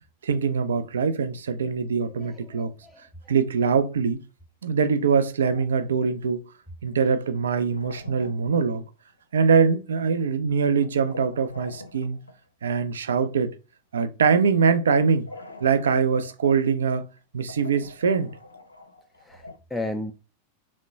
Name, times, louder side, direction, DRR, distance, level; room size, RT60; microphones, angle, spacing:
voice 1, 0.2-2.7 3.3-4.2 4.6-6.4 6.8-8.8 9.3-12.2 12.6-13.6 13.9-15.3 15.6-17.1 17.3-18.3, right 5 dB, 65° right, 0.4 m, -23 dB
sound 1, 2.0-2.5 2.8-3.1 3.6-3.7 3.9-4.0 5.0-5.9 6.9-8.9 9.2-9.7 10.4-12.4 12.7-13.1 15.3-16.7 17.2-17.3 17.5-19.6, left 2 dB, 80° left, 0.5 m, -44 dB
voice 2, 2.2-3.0 19.2-20.1, left 1 dB, 5° left, 0.4 m, -34 dB
3.6 x 2.1 x 3.8 m
figure-of-eight pair, 90°, 0 cm